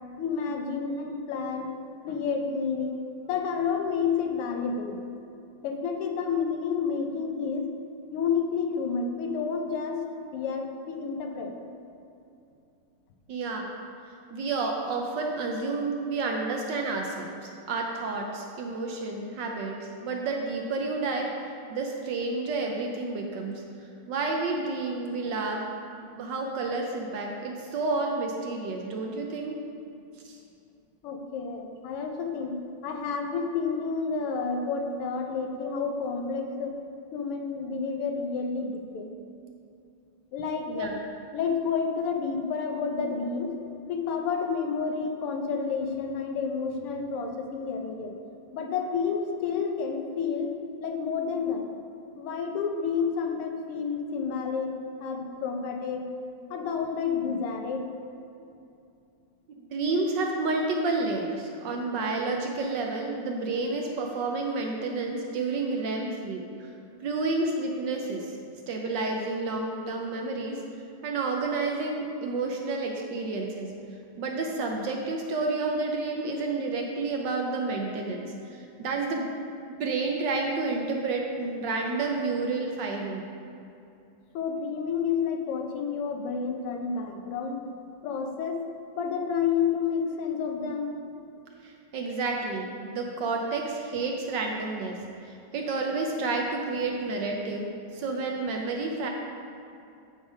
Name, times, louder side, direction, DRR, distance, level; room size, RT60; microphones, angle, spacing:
voice 1, 0.2-1.8 2.0-3.0 3.3-5.0 5.6-7.7 8.1-10.1 10.3-11.5 31.0-36.7 37.1-39.1 40.3-40.9 41.3-43.6 43.9-48.2 48.5-51.6 52.2-56.1 56.5-57.9 84.3-87.6 88.0-88.6 88.9-90.9, left 5 dB, 90° left, 3 dB, 1.8 m, -30 dB
voice 2, 13.3-13.7 14.3-23.6 24.1-25.7 26.0-29.6 30.2-30.4 40.7-41.0 59.6-66.7 67.0-68.3 68.7-70.6 71.0-73.7 74.2-79.3 79.7-83.2 91.6-99.1, right 3 dB, 65° right, 1 dB, 1.2 m, -30 dB
11.5 x 4.0 x 5.0 m, 2.7 s
omnidirectional pair, 2.4 m